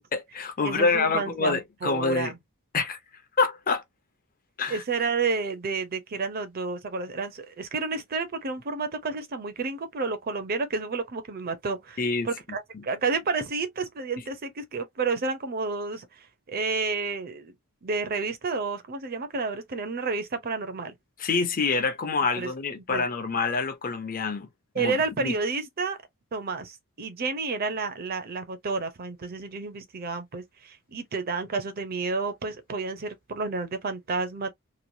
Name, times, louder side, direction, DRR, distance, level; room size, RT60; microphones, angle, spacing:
voice 1, 0.1-2.3 2.7-3.0 3.4-3.8 4.6-4.8 12.0-12.3 12.7-12.8 21.2-24.5 24.8-25.3, left 4 dB, 40° left, 0.6 m, -26 dB
voice 2, 0.6-2.4 4.7-17.5 17.8-20.9 22.4-22.5 22.9-23.0 24.7-26.0 26.3-34.5, right 4 dB, 45° right, 0.6 m, -30 dB
3.0 x 2.2 x 2.6 m
head